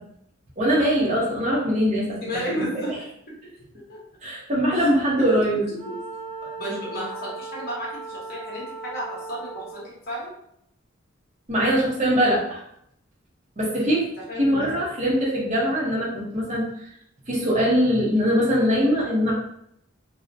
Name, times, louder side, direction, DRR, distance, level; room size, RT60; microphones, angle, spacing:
voice 1, 0.6-2.7 4.2-5.7 11.5-12.6 13.6-14.1 14.4-16.9 17.3-19.3, equal, 35° right, -5 dB, 0.9 m, -22 dB
voice 2, 2.0-2.9 3.9-4.0 4.7-4.9 5.9-6.0 6.6-10.3 14.3-14.8, equal, 50° left, -5 dB, 0.9 m, -33 dB
Wind instrument woodwind instrument, 5.7-9.9, right 3 dB, 60° right, 1.3 m, -37 dB
2.7 x 2.1 x 2.6 m, 0.73 s
head